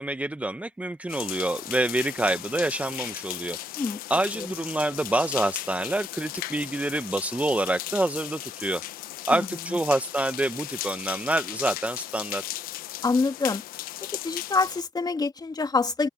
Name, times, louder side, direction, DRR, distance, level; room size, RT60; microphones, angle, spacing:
voice 1, 0.0-3.6 4.1-8.8 9.3-12.4, right 1 dB, 10° right, 1.1 m, -27 dB
sound 1, 1.1-14.8, left 15 dB, 75° left, 1.3 m, -37 dB
voice 2, 9.3-9.8 13.0-13.6 14.1-16.1, left 4 dB, 25° left, 2.8 m, -26 dB
open air
supercardioid pair, 70°, 15 cm